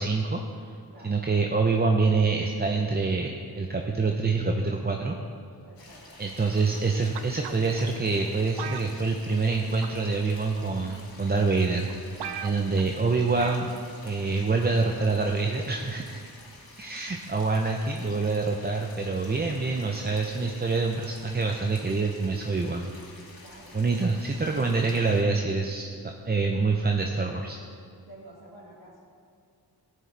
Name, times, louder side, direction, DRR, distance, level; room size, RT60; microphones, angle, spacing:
voice 1, 0.0-0.7 1.0-5.2 6.2-11.9 12.4-13.7 14.0-16.2 16.8-22.9 23.7-27.6, right 4 dB, 25° right, 2 dB, 0.7 m, -26 dB
voice 2, 5.6-6.2 12.7-12.9 19.2-19.4 23.4-23.8 28.1-29.0, right 1 dB, 65° right, -6 dB, 2.0 m, -50 dB
sound 1, 5.8-25.2, left 2 dB, 60° left, 2.1 m, -49 dB
sound 2, 7.1-7.8 8.6-9.5 9.8-10.1 11.0-11.1 11.6-11.7 11.9-12.0 12.2-12.9 13.4-13.7 14.0-14.1, right 8 dB, 80° right, 0.6 m, -38 dB
12.5 x 9.5 x 3.4 m, 2.3 s
cardioid pair, 50°, 40 cm